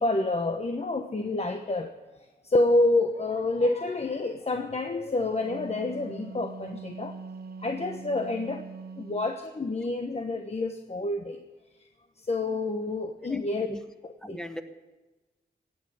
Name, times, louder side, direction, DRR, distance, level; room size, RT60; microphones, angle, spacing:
voice 1, 0.0-1.9 2.4-7.2 7.6-8.7 9.0-11.4 12.2-13.7 14.0-14.4, left 2 dB, 40° left, 6 dB, 1.1 m, -28 dB
Wind instrument woodwind instrument, 5.2-9.4, right 4 dB, 65° right, 0.8 m, -42 dB
voice 2, 13.2-13.8 14.2-14.6, equal, 5° left, 7 dB, 1.4 m, -39 dB
16.0 x 8.9 x 9.1 m, 1.1 s
cardioid pair, 70°, 17 cm